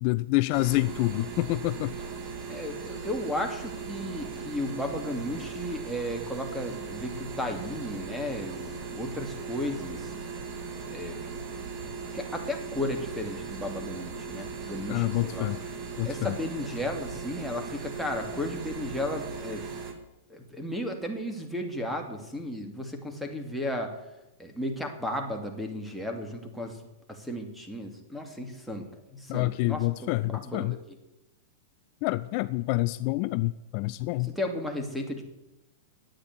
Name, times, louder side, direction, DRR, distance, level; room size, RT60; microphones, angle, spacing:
voice 1, 0.0-1.9 14.9-15.6 16.0-16.4 29.3-30.7 32.0-34.3, left 21 dB, 50° left, 14 dB, 0.4 m, -27 dB
sound 1, 0.5-19.9, right 5 dB, 40° right, 2.4 m, -38 dB
voice 2, 2.5-10.1 10.9-11.4 11.8-15.5 16.0-19.7 20.3-23.9 24.4-26.8 27.1-30.8 34.2-35.2, left 1 dB, ahead, 3 dB, 2.4 m, -34 dB
9.7 x 9.0 x 9.5 m, 0.99 s
hypercardioid pair, 115°, 0 cm